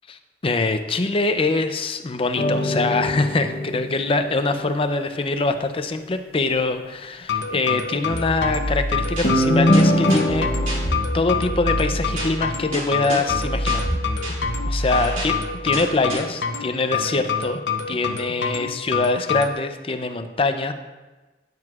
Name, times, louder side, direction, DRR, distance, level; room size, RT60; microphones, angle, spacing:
voice 1, 0.4-10.5 11.1-13.8 14.2-15.4 15.6-17.6 17.9-20.7, left 3 dB, 30° left, 8 dB, 0.5 m, -24 dB
sound 1, 2.4-4.9 9.2-11.0, equal, 55° left, 0.9 m, -22 dB
sound 2, 7.2-19.5, left 6 dB, 85° left, 0.7 m, -27 dB
sound 3, 8.1-16.1, equal, 45° right, 2.8 m, -28 dB
9.5 x 9.2 x 2.4 m, 1.2 s
head